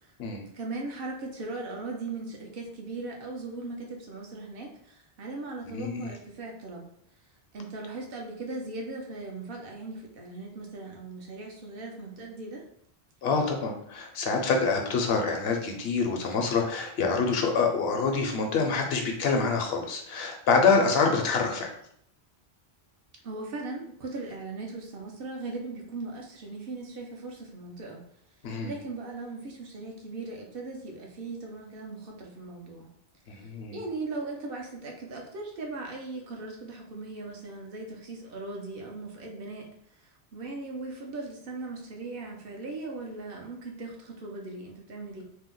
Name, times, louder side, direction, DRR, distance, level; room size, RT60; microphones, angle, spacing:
voice 1, 0.5-6.9 7.5-12.6 23.2-28.0 28.6-32.9 33.3-39.7 40.0-45.2, right 3 dB, 65° right, 0 dB, 0.8 m, -38 dB
voice 2, 5.7-6.1 13.2-21.7 28.4-28.7 33.3-33.8, left 4 dB, 70° left, 3 dB, 0.8 m, -26 dB
2.7 x 2.1 x 3.7 m, 0.69 s
omnidirectional pair, 1.1 m